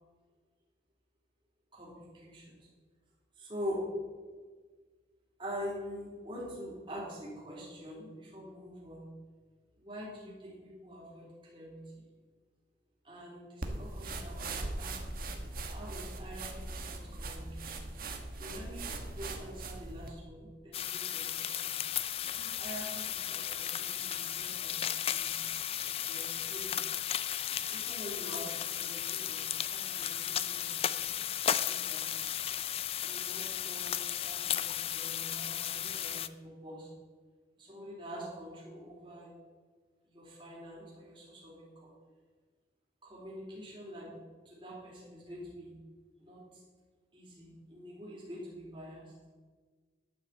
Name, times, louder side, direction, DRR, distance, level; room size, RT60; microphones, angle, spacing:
voice 1, 1.7-2.7 3.4-3.9 5.4-9.1 9.8-12.0 13.0-15.2 15.7-17.8 18.4-21.8 22.2-25.4 26.1-26.7 27.5-32.3 33.0-36.9 37.6-39.3 40.0-41.9 43.0-44.2 44.5-45.7 46.2-46.6 47.1-49.1, equal, 25° right, -5 dB, 4.1 m, -45 dB
sound 1, 13.6-20.1, right 2 dB, 50° right, 1.3 m, -40 dB
sound 2, 20.7-36.3, left 10 dB, 30° left, 0.3 m, -35 dB
12.0 x 6.1 x 7.8 m, 1.5 s
head